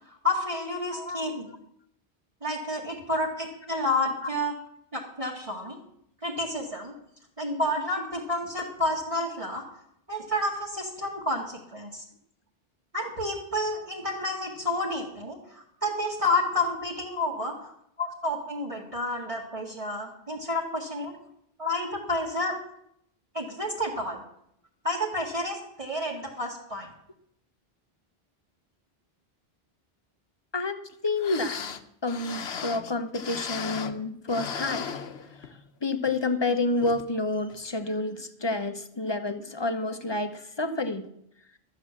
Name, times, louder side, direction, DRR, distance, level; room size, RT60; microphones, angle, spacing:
voice 1, 0.1-1.5 2.4-4.5 4.9-5.8 6.2-6.9 7.4-9.6 10.1-12.0 12.9-21.1 21.6-22.6 23.3-24.2 24.8-26.9, left 1 dB, 35° right, -5 dB, 2.1 m, -30 dB
voice 2, 0.9-1.2 30.5-30.8 31.0-31.6 32.0-34.9 35.8-41.1, left 2 dB, 25° left, 8 dB, 0.9 m, -29 dB
sound 1, 30.9-31.0 31.2-34.0 34.3-35.7 36.1-36.2 36.8-37.1 37.5-37.6, left 7 dB, 90° left, 1.1 m, -36 dB
13.5 x 7.7 x 7.4 m, 0.74 s
omnidirectional pair, 1.0 m